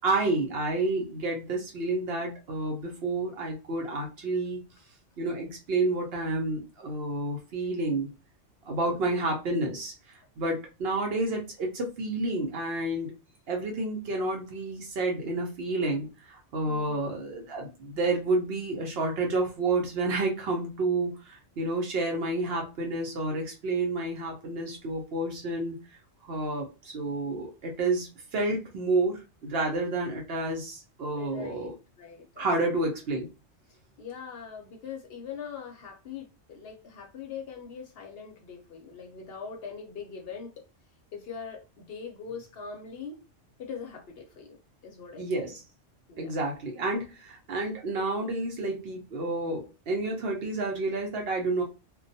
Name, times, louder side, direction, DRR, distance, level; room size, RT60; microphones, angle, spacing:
voice 1, 0.0-4.6 5.2-8.1 8.6-13.1 13.5-25.8 26.2-31.7 32.4-33.3 45.2-45.6 46.2-51.6, right 2 dB, 60° right, 1 dB, 0.7 m, -30 dB
voice 2, 8.8-9.2 16.7-17.1 31.1-31.7 32.0-32.8 33.7-40.6 41.1-43.2 43.6-44.6 44.8-45.5 46.1-46.4, left 6 dB, 60° left, 2 dB, 0.7 m, -42 dB
2.2 x 2.2 x 2.6 m, 0.30 s
omnidirectional pair, 1.3 m